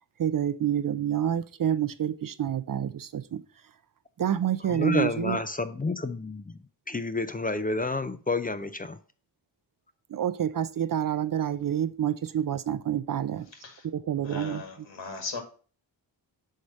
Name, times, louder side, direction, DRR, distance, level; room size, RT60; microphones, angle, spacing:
voice 1, 0.2-3.4 4.2-5.4 10.1-13.5 13.9-14.6, right 10 dB, 50° right, 0.5 m, -28 dB
voice 2, 4.7-6.6 6.9-9.0, left 3 dB, 20° left, 0.4 m, -30 dB
voice 3, 13.5-13.9 14.2-15.4, left 4 dB, 85° left, 2.0 m, -38 dB
6.5 x 4.8 x 4.2 m
wide cardioid pair, 120°, 45 cm